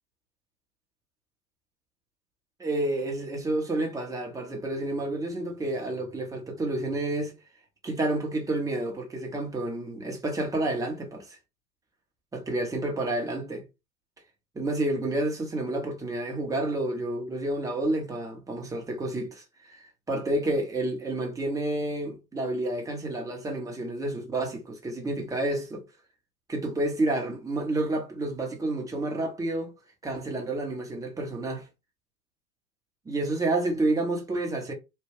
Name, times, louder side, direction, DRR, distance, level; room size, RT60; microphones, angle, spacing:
voice 1, 2.6-7.4 7.8-11.4 12.3-13.6 14.5-19.8 20.1-25.9 26.5-29.7 30.0-31.7 33.0-34.7, right 2 dB, 5° right, 0.9 m, -29 dB
3.3 x 2.2 x 3.5 m
hypercardioid pair, 100°, 47 cm